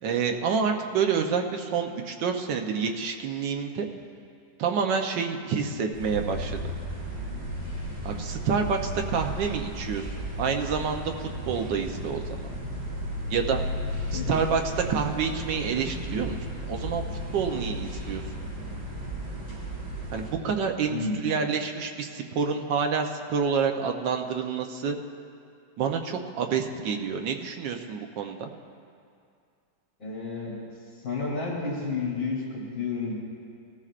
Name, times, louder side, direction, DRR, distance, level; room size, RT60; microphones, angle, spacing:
voice 1, 0.0-3.9 4.6-6.6 8.0-12.2 13.3-13.6 14.1-17.0 17.3-18.2 20.1-25.0 25.8-28.5, right 6 dB, 70° right, 4 dB, 1.4 m, -28 dB
sound 1, 5.9-20.3, equal, 20° right, 3.1 m, -34 dB
voice 2, 14.1-14.4 20.9-21.2 30.0-30.6 31.0-33.1, left 4 dB, 50° left, -6 dB, 3.8 m, -31 dB
19.0 x 14.0 x 2.5 m, 2.4 s
omnidirectional pair, 2.1 m